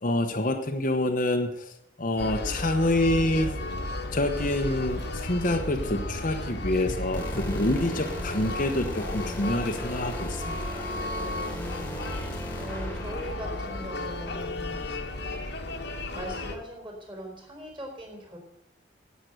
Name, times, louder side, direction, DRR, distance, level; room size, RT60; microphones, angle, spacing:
voice 1, 0.0-1.7 2.0-3.5 4.1-10.9, left 1 dB, 45° left, 4 dB, 1.0 m, -27 dB
sound 1, 2.2-16.6, left 2 dB, 60° left, 1.5 m, -34 dB
sound 2, 4.3-6.4, right 1 dB, 75° right, 4.4 m, -48 dB
sound 3, 7.1-13.6, equal, 10° left, 1.9 m, -38 dB
voice 2, 11.2-11.9 12.6-14.9 16.1-18.4, equal, 25° right, 2 dB, 4.0 m, -40 dB
11.0 x 8.4 x 8.0 m, 0.75 s
head